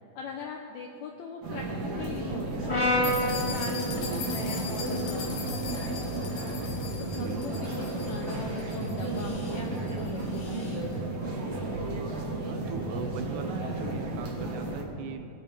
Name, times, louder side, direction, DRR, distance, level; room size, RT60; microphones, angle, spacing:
voice 1, 0.1-1.6 2.0-6.3 7.0-10.9, left 5 dB, 85° left, 2 dB, 1.6 m, -41 dB
sound 1, 1.4-14.8, right 2 dB, 55° right, 1.9 m, -33 dB
Brass instrument, 2.7-6.9, left 1 dB, 35° left, 2.1 m, -32 dB
sound 2, 3.0-10.8, left 6 dB, 65° left, 2.7 m, -41 dB
voice 2, 7.1-7.7 12.5-15.3, right 5 dB, 75° right, 6 dB, 1.9 m, -40 dB
21.0 x 7.3 x 3.4 m, 2.5 s
omnidirectional pair, 4.1 m